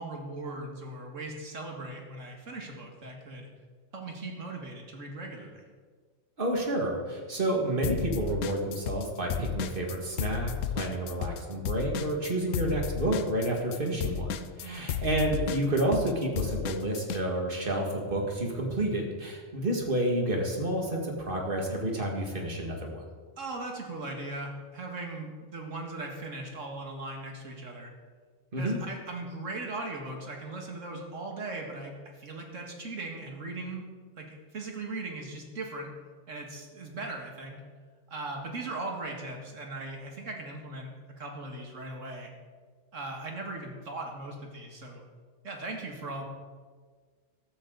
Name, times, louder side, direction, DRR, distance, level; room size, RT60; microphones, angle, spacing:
voice 1, 0.0-3.5 3.9-5.7 14.6-14.9 23.4-27.9 28.6-33.9 34.2-35.9 36.3-37.6 38.1-42.3 42.9-45.0 45.4-46.3, right 2 dB, 80° right, 1 dB, 2.3 m, -39 dB
voice 2, 6.4-23.0 28.5-28.8, right 1 dB, 45° right, 0 dB, 2.3 m, -30 dB
sound 1, 7.8-9.1 9.3-17.2, left 9 dB, 90° left, 1.1 m, -33 dB
14.5 x 13.0 x 4.0 m, 1.5 s
omnidirectional pair, 1.3 m